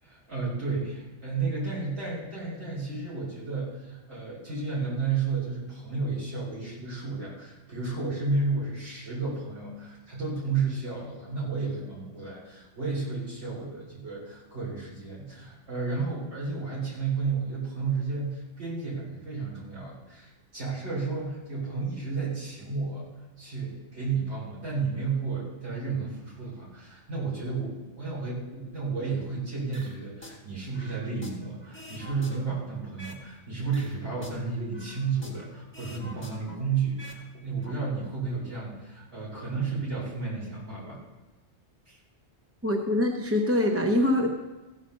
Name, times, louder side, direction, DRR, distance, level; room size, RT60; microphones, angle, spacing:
voice 1, 0.0-23.1 23.4-41.0 41.9-42.0, right 4 dB, 65° right, -6 dB, 4.2 m, -32 dB
sound 1, 29.7-30.4 30.7-33.3 33.6-35.5 35.7-37.2 37.5-37.7, left 1 dB, 10° left, 1.4 m, -46 dB
voice 2, 42.6-44.3, left 1 dB, 15° right, 2 dB, 0.7 m, -24 dB
15.5 x 5.7 x 6.4 m, 1.1 s
omnidirectional pair, 1.2 m